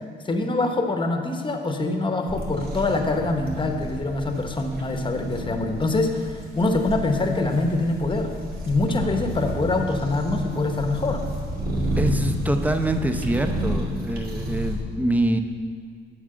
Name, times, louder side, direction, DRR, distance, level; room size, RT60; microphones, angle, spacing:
voice 1, 0.2-8.3 8.7-11.2, left 2 dB, 25° left, 5 dB, 1.0 m, -24 dB
sound 1, 2.3-14.8, equal, 50° right, 2.4 m, -30 dB
voice 2, 12.0-15.4, right 1 dB, 10° right, 6 dB, 0.7 m, -24 dB
8.8 x 5.0 x 7.6 m, 2.2 s
cardioid pair, 90°, 20 cm